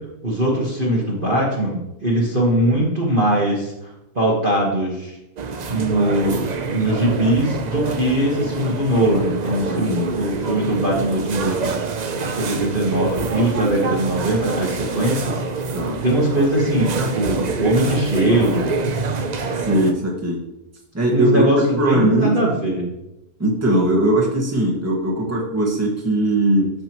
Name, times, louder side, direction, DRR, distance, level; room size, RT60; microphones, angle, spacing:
voice 1, 0.2-3.7 4.1-5.2 5.7-11.7 12.2-15.4 16.0-18.8 21.1-22.8, right 1 dB, 35° right, -4 dB, 1.6 m, -21 dB
sound 1, 5.4-19.9, right 4 dB, 70° right, 0.4 m, -26 dB
voice 2, 9.7-10.1 15.7-16.0 17.0-17.1 19.5-20.4 20.9-22.4 23.4-26.7, right 1 dB, 10° right, -2 dB, 1.5 m, -20 dB
14.0 x 5.4 x 3.0 m, 0.89 s
omnidirectional pair, 1.6 m